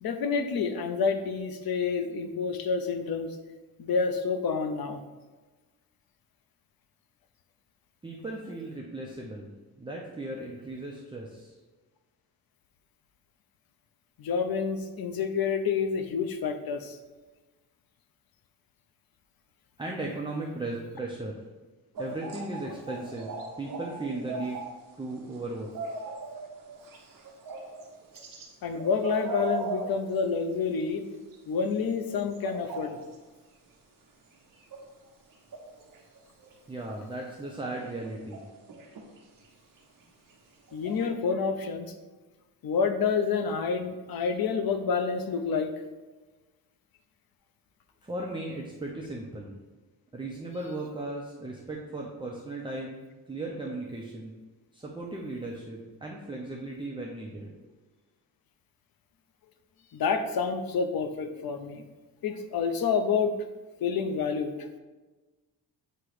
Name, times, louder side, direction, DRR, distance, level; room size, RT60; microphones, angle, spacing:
voice 1, 0.0-3.4 3.8-5.0 14.2-17.0 28.6-31.0 31.5-33.0 40.7-41.9 42.6-45.7 59.9-61.8 62.2-63.4 63.8-64.5, left 5 dB, 60° left, 8 dB, 0.7 m, -28 dB
voice 2, 8.0-9.5 9.8-11.6 19.8-21.4 22.0-24.6 25.0-25.7 36.7-38.5 48.0-49.6 50.1-54.4 54.7-57.5, right 2 dB, 10° right, -2 dB, 0.5 m, -36 dB
sound 1, 21.9-24.7 24.9-28.5 28.7-31.0 31.3-31.4 31.6-33.1 34.6-36.5 37.2-37.3 37.8-39.2 39.4-39.5 39.8-40.0 40.3-40.4 40.7-41.1, right 3 dB, 55° right, 1.1 m, -39 dB
7.8 x 3.0 x 4.8 m, 1.2 s
wide cardioid pair, 165°, 41 cm